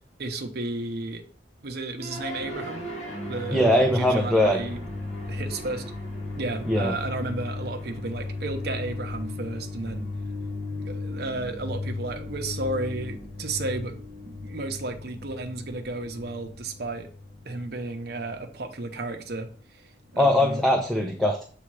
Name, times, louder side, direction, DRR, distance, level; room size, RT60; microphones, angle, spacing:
voice 1, 0.2-1.2 1.6-2.8 3.3-3.7 3.9-4.8 5.3-5.8 6.4-10.1 10.8-17.1 17.4-19.5 20.1-20.7, right 2 dB, 65° right, 4 dB, 0.8 m, -33 dB
sound 1, 2.0-20.3, left 2 dB, 40° left, 1.5 m, -36 dB
voice 2, 3.5-4.6 6.7-6.9 20.2-21.4, left 1 dB, ahead, 1 dB, 0.7 m, -21 dB
7.3 x 3.4 x 4.7 m, 0.42 s
head